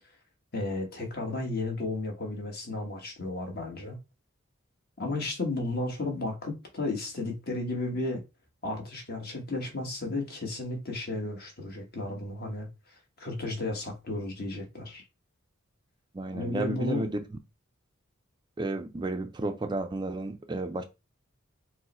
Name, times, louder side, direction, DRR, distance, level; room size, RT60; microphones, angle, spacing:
voice 1, 0.5-4.0 5.0-8.2 8.6-15.0 16.3-17.1, left 2 dB, 50° left, 1.2 m, -33 dB
voice 2, 16.1-17.2 18.6-20.8, right 2 dB, 20° right, 0.3 m, -32 dB
4.6 x 2.1 x 4.3 m
head